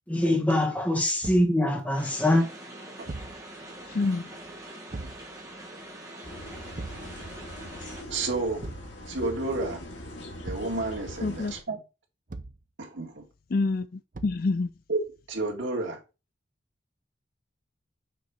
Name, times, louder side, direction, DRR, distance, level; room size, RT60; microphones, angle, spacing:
voice 1, 0.1-2.5, left 1 dB, 10° left, 1.4 m, -23 dB
Thump thud, 1.2-1.6 3.1-3.4 4.9-5.3 6.8-7.1 8.6-8.9 10.4-10.8 12.3-12.6 14.1-14.5, right 2 dB, 45° right, 0.6 m, -39 dB
sound 1, 2.0-8.0, right 1 dB, 15° right, 1.4 m, -44 dB
voice 2, 3.9-4.3 11.2-11.5 13.5-14.7, left 3 dB, 50° left, 0.4 m, -27 dB
sound 2, 6.2-11.6, left 1 dB, 75° left, 2.3 m, -41 dB
voice 3, 8.1-8.7 9.1-9.8 10.4-11.8 12.8-13.3 14.9-15.0 15.3-16.0, right 2 dB, 80° right, 2.0 m, -31 dB
6.6 x 4.0 x 4.7 m
head